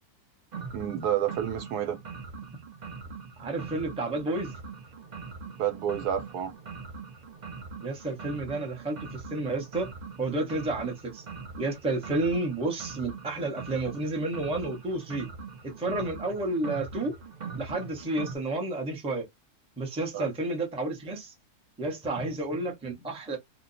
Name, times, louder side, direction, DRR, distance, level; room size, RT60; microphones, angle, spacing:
sound 1, 0.5-18.4, right 5 dB, 65° right, 0.4 m, -42 dB
voice 1, 0.7-2.0 5.6-6.5 20.1-20.3, right 10 dB, 80° right, 1.2 m, -29 dB
voice 2, 3.4-4.6 7.8-9.9 10.2-11.2 11.6-15.3 15.6-17.2 17.5-19.3 19.8-21.3 21.8-23.4, right 2 dB, 5° right, 0.5 m, -31 dB
2.7 x 2.2 x 3.9 m
omnidirectional pair, 1.7 m